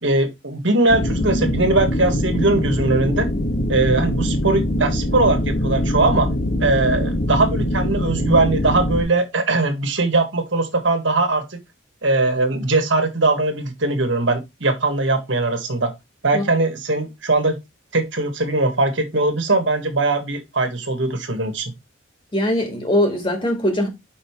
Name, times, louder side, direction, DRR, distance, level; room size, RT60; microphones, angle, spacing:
voice 1, 0.0-3.3 3.7-6.3 6.6-11.6 12.0-15.9 16.2-17.6 17.9-21.7, right 2 dB, 70° right, 1.6 m, -20 dB
sound 1, 0.9-9.0, left 1 dB, 50° left, 1.4 m, -22 dB
voice 2, 22.3-23.9, left 1 dB, 25° left, 2.1 m, -21 dB
5.5 x 5.4 x 4.6 m
head